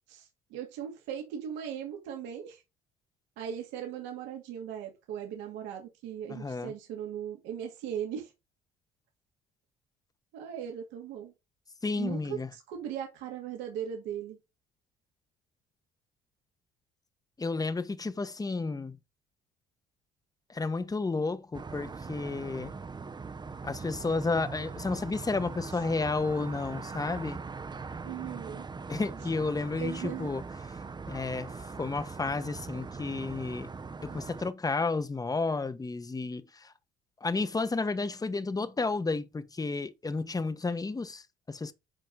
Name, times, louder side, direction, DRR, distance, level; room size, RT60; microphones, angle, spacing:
voice 1, 0.1-2.6 3.4-8.3 10.3-11.3 11.9-14.4 28.0-28.7 29.8-30.3, right 9 dB, 80° right, 2.4 m, -38 dB
voice 2, 6.3-6.7 11.8-12.5 17.4-19.0 20.5-22.7 23.6-27.4 28.9-30.4 31.1-31.5 31.8-33.7 34.0-36.7 37.2-41.7, left 3 dB, 20° left, 1.2 m, -32 dB
sound 1, 21.5-34.5, right 4 dB, 25° right, 0.8 m, -41 dB
9.1 x 5.2 x 3.8 m
supercardioid pair, 70°, 19 cm